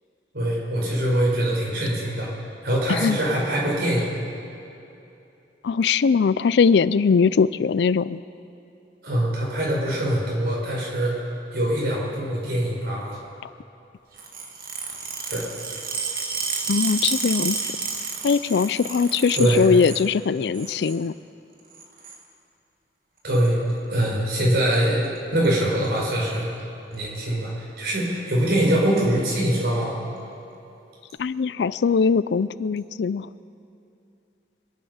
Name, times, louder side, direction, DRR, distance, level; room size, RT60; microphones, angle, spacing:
voice 1, 0.3-2.3 2.6-4.2 9.0-11.1 11.5-13.2 15.3-15.4 19.3-19.6 23.2-26.5 26.9-30.0, right 1 dB, 70° right, -4 dB, 4.7 m, -23 dB
voice 2, 5.6-8.2 16.7-17.6 18.2-21.1 31.2-33.3, left 5 dB, 75° left, 17 dB, 0.4 m, -21 dB
sound 1, 14.2-20.1 20.4-21.0 21.7-22.2 23.3-23.5 24.5-24.8 25.0-25.2 25.4-25.5 25.8-26.3 26.9-27.0 28.0-28.1, right 5 dB, 50° right, 1.7 m, -31 dB
24.5 x 9.3 x 5.6 m, 2.8 s
head